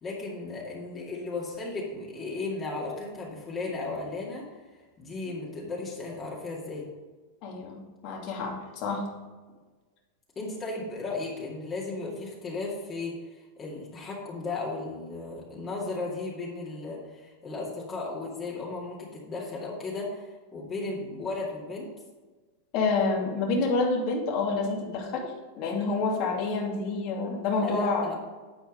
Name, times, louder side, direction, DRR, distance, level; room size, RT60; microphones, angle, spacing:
voice 1, 0.0-4.5 5.0-6.9 10.4-21.9 27.6-28.2, left 3 dB, 25° left, -4 dB, 2.3 m, -35 dB
voice 2, 7.4-9.0 22.7-25.3 25.6-28.1, left 3 dB, 50° left, -1 dB, 2.6 m, -28 dB
10.5 x 4.5 x 5.2 m, 1.3 s
hypercardioid pair, 115°, 0 cm